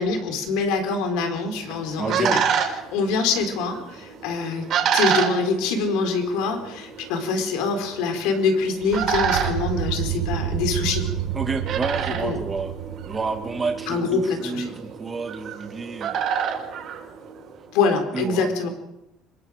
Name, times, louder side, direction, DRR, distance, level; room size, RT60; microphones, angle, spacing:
voice 1, 0.0-2.4 2.9-4.7 4.9-11.0 12.2-12.4 13.9-14.7 17.7-18.7, left 4 dB, 80° left, 6 dB, 4.3 m, -24 dB
sound 1, 1.4-17.7, right 8 dB, 40° right, 4.6 m, -29 dB
voice 2, 2.0-2.4 11.3-12.7 13.0-16.2 18.1-18.5, right 4 dB, 15° right, 4 dB, 2.2 m, -29 dB
sound 2, 8.8-14.1, right 10 dB, 60° right, 1.6 m, -30 dB
26.5 x 22.0 x 5.2 m, 0.91 s
cardioid pair, 170°, 0 cm